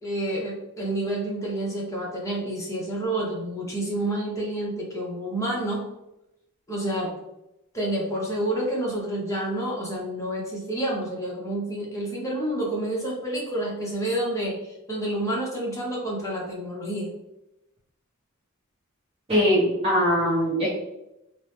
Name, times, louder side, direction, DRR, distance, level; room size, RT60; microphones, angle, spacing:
voice 1, 0.0-5.8 6.7-7.1 7.7-14.6 14.9-17.1, right 1 dB, 15° left, -4 dB, 0.8 m, -29 dB
voice 2, 19.3-20.7, equal, 25° right, -9 dB, 0.7 m, -21 dB
2.9 x 2.0 x 3.2 m, 0.89 s
head